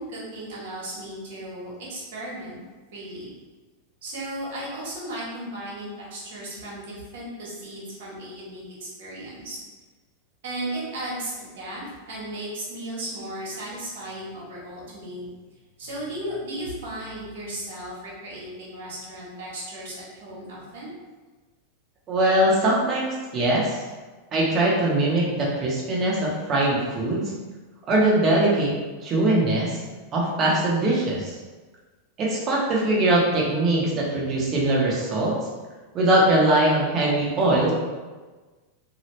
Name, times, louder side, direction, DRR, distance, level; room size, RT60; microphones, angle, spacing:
voice 1, 0.0-2.6 2.9-3.3 4.0-9.6 10.4-15.3 15.8-20.9, right 1 dB, 75° right, -6 dB, 1.3 m, -35 dB
voice 2, 22.1-23.8 24.3-27.3 27.9-28.7 29.0-29.8 30.1-31.4 32.2-35.3 35.9-37.7, right 1 dB, 30° right, -4 dB, 0.8 m, -21 dB
2.8 x 2.3 x 3.1 m, 1.3 s
supercardioid pair, 145°, 0 cm